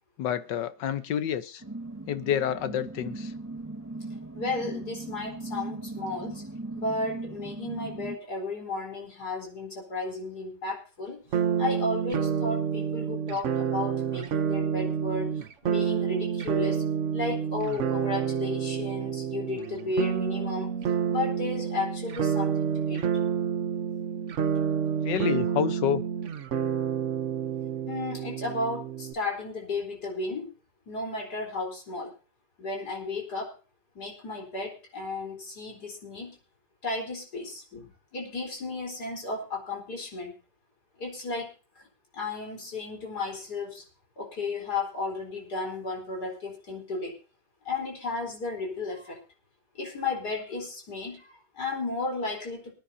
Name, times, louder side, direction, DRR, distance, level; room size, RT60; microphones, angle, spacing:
voice 1, 0.2-1.6 2.1-3.3 25.0-26.0, left 9 dB, 90° left, 1.6 m, -28 dB
sound 1, 1.6-8.2, right 2 dB, 25° right, 0.3 m, -38 dB
voice 2, 4.3-6.4 6.7-11.2 11.6-15.3 15.6-16.8 17.1-20.7 21.1-23.0 27.9-30.5 30.9-32.1 32.6-33.5 33.9-36.4 36.8-40.3 41.0-41.9 42.1-43.8 44.2-47.2 47.6-49.2 49.7-52.7, left 3 dB, 65° left, 4.7 m, -34 dB
sound 2, 11.3-29.1, right 7 dB, 50° right, 1.1 m, -29 dB
24.0 x 9.9 x 2.7 m
omnidirectional pair, 1.9 m